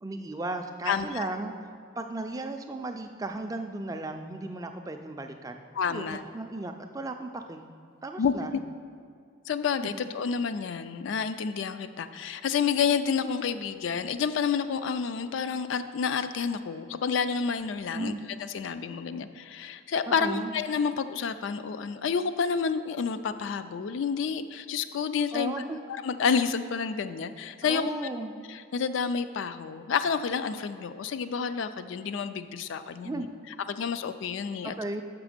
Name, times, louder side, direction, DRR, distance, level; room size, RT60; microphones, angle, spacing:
voice 1, 0.0-1.5 2.0-5.6 5.9-7.6 8.0-8.5 9.8-9.9 17.9-18.2 20.1-20.5 25.3-25.8 27.6-28.3 33.0-33.3 34.6-35.0, right 2 dB, 15° right, 6 dB, 0.3 m, -35 dB
voice 2, 0.9-1.3 5.7-6.2 8.2-8.3 9.5-18.1 18.4-25.5 25.9-27.9 28.5-33.3 33.7-34.7, left 6 dB, 65° left, 11 dB, 0.3 m, -29 dB
6.5 x 6.1 x 5.0 m, 2.4 s
head